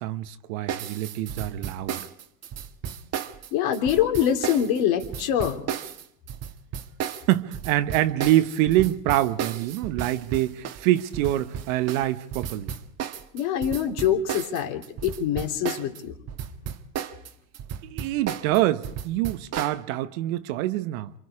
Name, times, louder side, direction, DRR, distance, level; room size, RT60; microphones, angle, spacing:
voice 1, 0.0-2.1 7.3-12.7 17.8-21.1, right 14 dB, 60° right, 1.2 m, -25 dB
sound 1, 0.7-16.0 16.3-19.8, right 8 dB, 35° right, 1.4 m, -34 dB
voice 2, 3.5-5.6 13.3-16.1, left 9 dB, 55° left, 3.3 m, -24 dB
28.5 x 25.5 x 4.9 m
hypercardioid pair, 105°, 47 cm